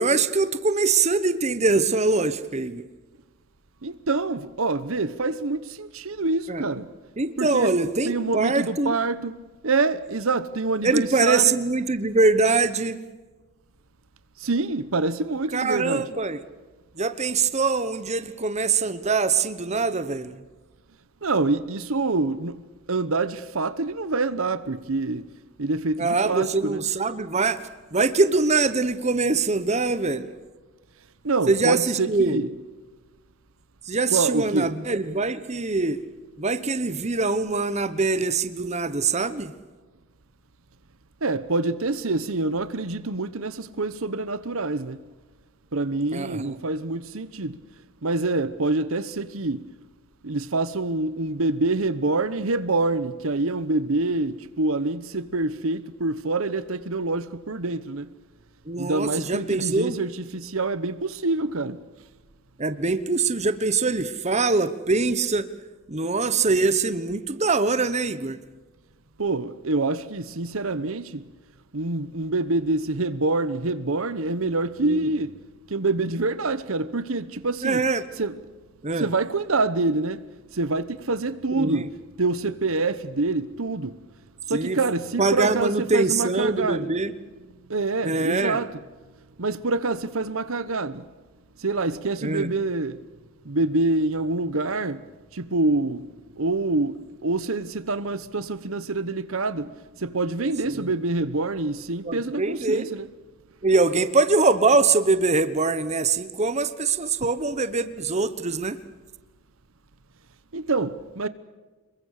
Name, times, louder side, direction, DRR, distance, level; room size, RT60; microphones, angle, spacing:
voice 1, 0.0-2.9 6.5-6.6 7.2-9.0 10.8-13.0 15.5-16.4 17.0-20.4 26.0-27.6 27.9-30.3 31.5-32.4 33.8-36.0 36.4-39.5 46.1-46.5 58.7-60.0 62.6-65.5 65.9-68.4 74.8-75.0 77.6-78.1 78.8-79.1 81.6-81.9 84.5-84.8 85.2-87.1 88.0-88.6 92.2-92.5 100.7-100.9 102.0-102.9 103.6-108.8, right 3 dB, 30° right, 1.1 m, -23 dB
voice 2, 3.8-6.9 7.4-7.8 8.0-11.5 14.4-16.1 21.2-25.3 25.6-26.8 31.2-32.5 34.1-34.7 41.2-45.0 45.7-47.6 48.0-49.7 50.2-58.1 58.8-61.8 69.2-71.3 71.7-75.4 75.7-77.8 78.2-78.3 79.0-80.3 80.5-84.0 84.5-86.9 87.7-88.8 89.4-91.1 91.6-93.0 93.4-95.0 95.3-103.1 110.5-111.3, right 3 dB, 70° right, 1.0 m, -26 dB
27.0 x 23.0 x 6.6 m
head